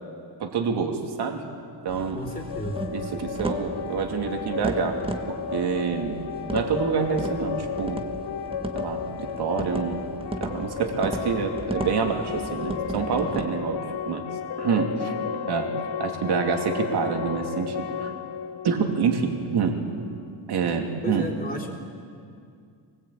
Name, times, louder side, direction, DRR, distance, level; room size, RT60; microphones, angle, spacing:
voice 1, 0.4-1.4 1.8-2.2 2.9-5.0 5.3-6.2 6.5-8.0 8.7-10.0 10.4-14.3 14.6-15.1 15.5-15.7 16.0-18.1 18.6-19.8 20.5-21.3, right 6 dB, 60° right, 3 dB, 2.9 m, -27 dB
sound 1, 1.9-13.5, right 1 dB, 10° right, 1.4 m, -36 dB
voice 2, 2.1-2.9 21.0-21.8, left 1 dB, 20° left, -2 dB, 3.6 m, -33 dB
sound 2, 2.3-20.0, left 7 dB, 65° left, 1.2 m, -33 dB
24.5 x 19.5 x 8.7 m, 2.3 s
cardioid pair, 150°, 43 cm